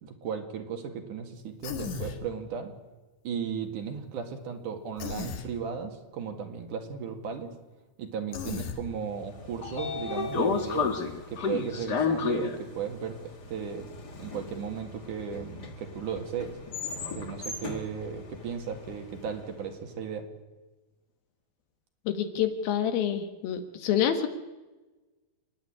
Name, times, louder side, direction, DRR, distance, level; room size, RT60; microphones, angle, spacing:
voice 1, 0.0-2.7 3.2-7.5 8.0-10.9 11.3-13.9 14.2-16.6 17.1-20.3, right 7 dB, 60° right, 4 dB, 3.3 m, -35 dB
Human voice, 1.6-2.2 5.0-5.5 8.3-8.8, left 6 dB, 60° left, 2.7 m, -35 dB
Train / Sliding door, 9.2-19.3, left 5 dB, 40° left, 1.5 m, -33 dB
voice 2, 22.1-24.3, left 9 dB, 80° left, 7 dB, 3.2 m, -27 dB
29.5 x 9.9 x 9.9 m, 1.2 s
omnidirectional pair, 4.2 m